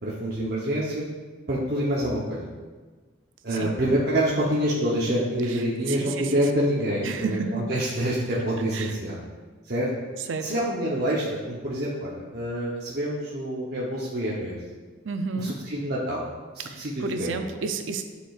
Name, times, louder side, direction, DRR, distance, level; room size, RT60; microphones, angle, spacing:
voice 1, 0.0-1.0 1.5-2.4 3.4-9.2 9.6-9.9 10.4-14.6 15.4-16.3 16.5-17.3, right 1 dB, 50° right, -6 dB, 0.9 m, -27 dB
voice 2, 5.9-6.3 7.0-7.7 8.7-8.9 10.3-10.5 15.0-15.6 16.6-18.0, right 4 dB, 75° right, 7 dB, 0.5 m, -31 dB
8.9 x 5.0 x 2.4 m, 1.4 s
head